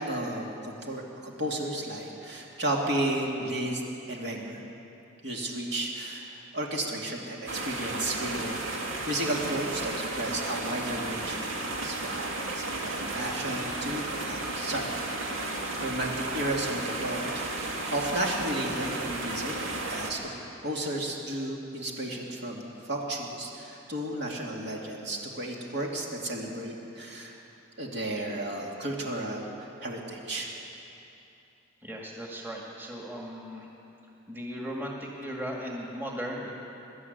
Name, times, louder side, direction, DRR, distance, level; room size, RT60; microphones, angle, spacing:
voice 1, 0.1-3.8 4.1-4.6 5.2-12.3 12.5-15.0 15.8-19.5 19.9-20.3 20.6-27.4 27.8-29.5 29.8-30.5, right 1 dB, 55° right, -1 dB, 2.7 m, -33 dB
sound 1, 7.5-20.1, right 2 dB, 75° right, 2.3 m, -34 dB
voice 2, 31.8-33.7 34.3-36.5, equal, 10° right, -2 dB, 2.1 m, -37 dB
21.5 x 12.5 x 9.6 m, 2.9 s
head